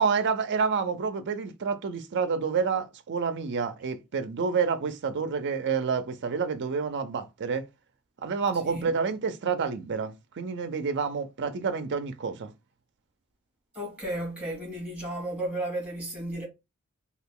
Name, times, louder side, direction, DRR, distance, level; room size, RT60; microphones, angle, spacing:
voice 1, 0.0-7.7 8.2-12.5, right 5 dB, 55° right, 0.5 m, -28 dB
voice 2, 13.7-16.5, right 1 dB, 5° right, 1.6 m, -33 dB
2.9 x 2.4 x 3.6 m
head